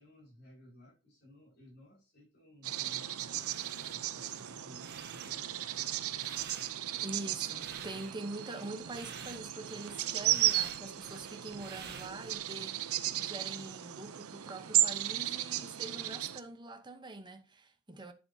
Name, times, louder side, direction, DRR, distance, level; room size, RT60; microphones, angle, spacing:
voice 1, 0.0-5.9, left 1 dB, 50° left, 5.4 m, -58 dB
sound 1, 2.6-16.4, right 13 dB, 75° right, 0.6 m, -35 dB
sound 2, 3.3-12.4, right 6 dB, 50° right, 1.5 m, -50 dB
voice 2, 7.0-18.1, right 2 dB, 20° right, 0.9 m, -44 dB
9.2 x 7.6 x 2.8 m
head